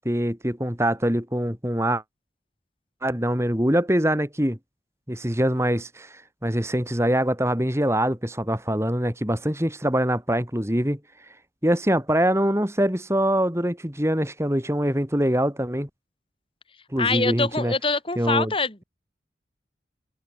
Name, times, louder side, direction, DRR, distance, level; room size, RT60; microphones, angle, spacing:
voice 1, 0.1-2.0 3.0-4.6 5.1-11.0 11.6-15.9 16.9-17.7 18.2-18.5, equal, 15° right, 3.6 m, -24 dB
voice 2, 17.0-18.8, left 3 dB, 30° left, 4.1 m, -24 dB
open air
head